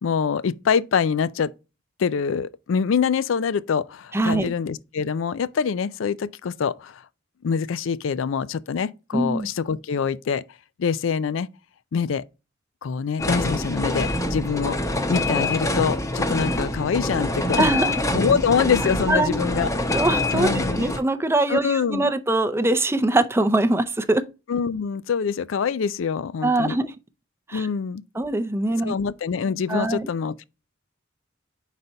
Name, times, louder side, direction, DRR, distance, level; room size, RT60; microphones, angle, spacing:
voice 1, 0.0-1.5 2.0-7.0 7.4-10.4 10.8-11.5 11.9-12.2 12.8-14.8 15.1-17.7 18.1-19.7 20.3-20.9 21.5-22.1 24.5-26.8 27.5-28.0 28.8-30.4, left 6 dB, 75° left, 0.4 m, -25 dB
voice 2, 4.1-4.5 9.1-9.5 17.6-17.9 19.1-19.4 19.9-24.3 26.4-26.9 27.5-27.7 28.1-28.9 29.7-30.1, right 2 dB, 15° right, 0.5 m, -22 dB
sound 1, 13.2-21.0, left 1 dB, 15° left, 0.8 m, -25 dB
5.2 x 4.1 x 4.4 m
head